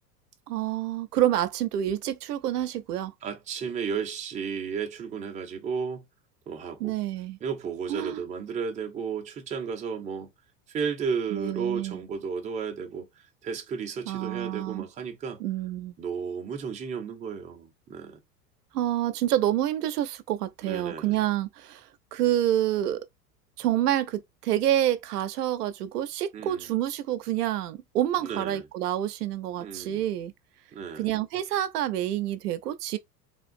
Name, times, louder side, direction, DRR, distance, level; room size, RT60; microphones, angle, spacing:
voice 1, 0.5-3.1 6.8-7.4 7.9-8.2 11.3-12.0 14.1-14.9 15.4-15.9 18.7-23.0 23.6-30.3 30.9-33.0, right 12 dB, 70° right, 0.6 m, -28 dB
voice 2, 3.2-6.0 6.5-6.9 7.4-10.3 10.7-13.1 13.4-15.4 16.0-18.2 20.6-21.3 26.3-26.6 28.2-28.6 29.6-30.0 30.7-31.1, right 6 dB, 15° right, 0.6 m, -33 dB
3.5 x 2.4 x 2.4 m
figure-of-eight pair, 85°, 49 cm